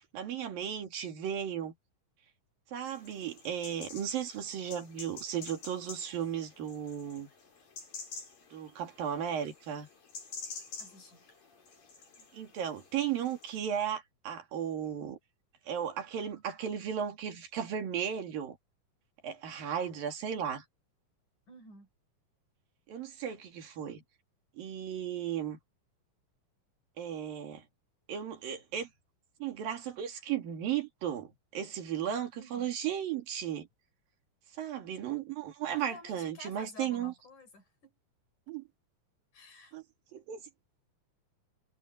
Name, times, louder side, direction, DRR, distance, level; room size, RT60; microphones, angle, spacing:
voice 1, 0.1-1.7 2.7-7.3 8.5-9.9 12.3-15.2 15.7-18.6 19.2-20.6 22.9-24.0 24.6-25.6 27.0-27.6 28.1-28.9 29.4-33.7 34.6-37.1 38.5-38.7 39.7-39.8 40.1-40.4, right 9 dB, 90° right, 4.4 m, -35 dB
sound 1, 2.9-13.6, left 4 dB, 80° left, 7.7 m, -49 dB
voice 2, 10.8-11.3 21.5-21.9 32.3-32.7 35.7-38.0 39.3-39.8, left 2 dB, 60° left, 8.0 m, -52 dB
omnidirectional pair, 3.9 m